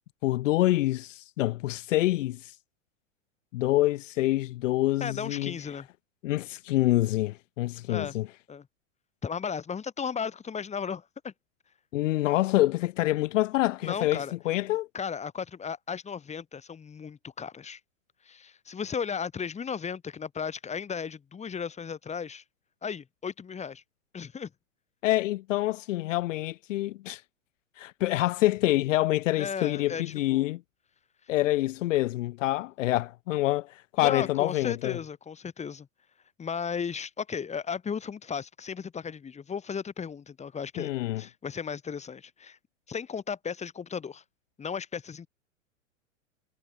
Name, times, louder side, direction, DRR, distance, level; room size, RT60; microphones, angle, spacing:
voice 1, 0.2-2.6 3.5-5.5 6.2-8.3 11.9-14.9 25.0-27.2 27.8-30.6 31.3-35.0 40.8-41.2, left 16 dB, 70° left, 0.7 m, -26 dB
voice 2, 5.0-5.9 7.9-8.2 8.5-8.7 9.2-11.3 13.8-14.3 14.9-17.8 18.2-22.4 22.8-23.8 24.1-24.5 29.4-30.5 34.0-35.9 36.4-40.9 41.2-42.6 42.9-44.2 44.6-45.3, left 6 dB, 15° left, 3.1 m, -35 dB
hypercardioid pair, 115°, 40 cm